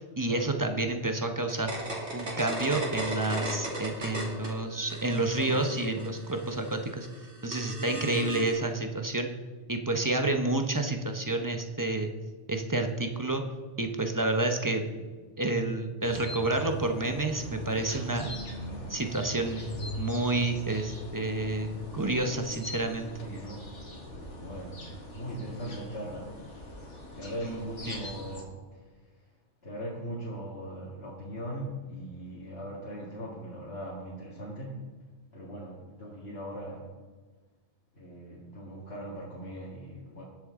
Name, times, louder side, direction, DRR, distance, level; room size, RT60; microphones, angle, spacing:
voice 1, 0.2-1.7 2.1-7.1 7.4-9.3 9.7-12.1 12.5-13.4 13.8-14.8 15.4-18.3 18.9-19.6 20.0-23.1 27.4-27.6 27.9-28.0, right 2 dB, 20° right, 5 dB, 0.8 m, -29 dB
sound 1, 1.5-4.5 4.8-8.5, right 1 dB, 70° right, 2.7 m, -37 dB
voice 2, 5.1-6.1 7.8-8.1 14.9-15.1 18.6-18.9 20.9-21.1 23.2-23.7 24.4-26.4 26.7-26.8 27.1-29.3 29.6-34.9 35.3-36.9 37.9-40.2, equal, 60° left, -6 dB, 2.1 m, -40 dB
sound 2, 16.0-28.4, left 1 dB, 85° left, 2.1 m, -41 dB
20.0 x 7.1 x 3.7 m, 1.4 s
omnidirectional pair, 1.2 m